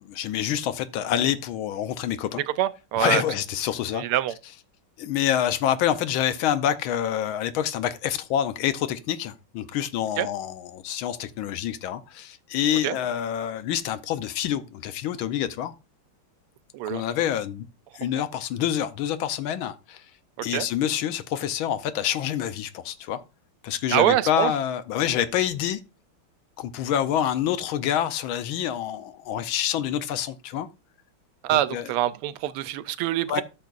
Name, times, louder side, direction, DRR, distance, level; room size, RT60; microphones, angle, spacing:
voice 1, 0.2-2.4 3.0-4.0 5.0-15.7 16.8-17.7 17.9-20.0 20.4-23.2 23.6-25.8 26.6-30.7 31.5-31.9 33.3-33.4, left 10 dB, 75° left, 1.4 m, -27 dB
voice 2, 2.6-3.2 3.9-4.3 10.2-10.3 12.8-13.0 16.7-17.0 20.4-20.7 23.9-24.5 31.4-33.4, right 13 dB, 90° right, 1.5 m, -25 dB
13.0 x 6.4 x 2.4 m
omnidirectional pair, 2.4 m